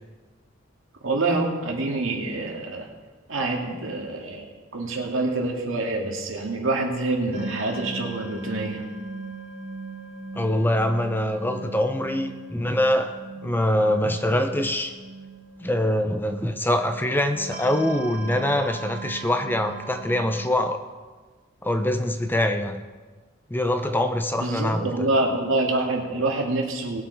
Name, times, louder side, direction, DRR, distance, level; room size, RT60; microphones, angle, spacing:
voice 1, 1.0-2.9 3.3-8.8 24.4-27.0, right 2 dB, 80° right, 1 dB, 2.1 m, -26 dB
sound 1, 7.3-20.4, right 3 dB, 50° right, 1.5 m, -39 dB
voice 2, 10.4-13.2 13.4-14.9 15.6-20.8 21.6-22.8 23.5-24.9, left 1 dB, 10° left, 7 dB, 0.6 m, -24 dB
19.5 x 6.8 x 4.5 m, 1.3 s
head